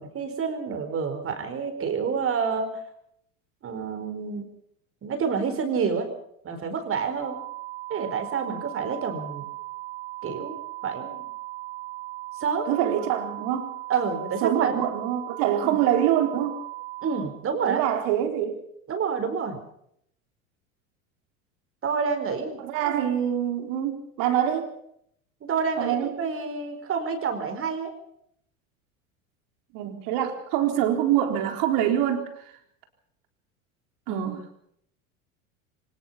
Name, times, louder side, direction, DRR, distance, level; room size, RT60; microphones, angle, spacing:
voice 1, 0.0-2.7 3.6-4.4 5.0-6.1 6.4-7.4 7.9-9.4 10.2-10.6 10.8-11.3 12.4-12.7 13.9-14.8 15.6-15.7 17.0-17.8 18.9-19.6 21.8-22.6 25.4-28.0 34.1-34.3, right 6 dB, 30° right, 8 dB, 4.6 m, -28 dB
sound 1, 7.2-17.2, right 19 dB, 5° right, 3.4 m, -38 dB
voice 2, 12.7-13.8 14.4-16.6 17.6-18.6 22.6-24.7 25.8-26.1 29.7-32.5 34.1-34.4, right 10 dB, 55° right, 5 dB, 3.9 m, -25 dB
24.0 x 19.5 x 5.8 m, 0.71 s
figure-of-eight pair, 80°, 41 cm